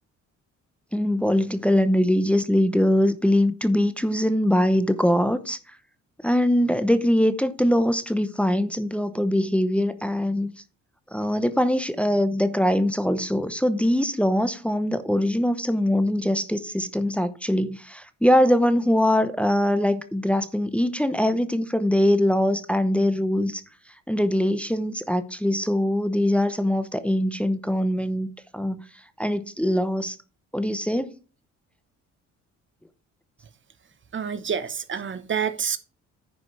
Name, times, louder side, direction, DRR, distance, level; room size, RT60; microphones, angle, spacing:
voice 1, 0.9-5.6 6.2-10.5 11.1-23.6 24.1-28.3 28.5-28.8 29.2-30.2 30.5-31.1, left 1 dB, 5° left, 0.7 m, -22 dB
voice 2, 34.1-35.8, right 7 dB, 40° right, 0.8 m, -28 dB
9.9 x 5.1 x 4.7 m
cardioid pair, 90°, 30 cm